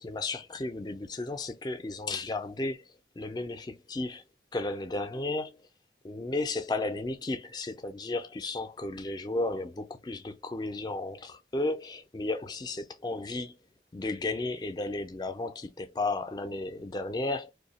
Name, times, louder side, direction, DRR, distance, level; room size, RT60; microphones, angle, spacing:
voice 1, 0.0-2.8 3.2-4.2 4.5-5.6 6.0-13.6 13.9-17.5, left 2 dB, 25° left, 0.4 m, -34 dB
2.7 x 2.2 x 4.0 m
head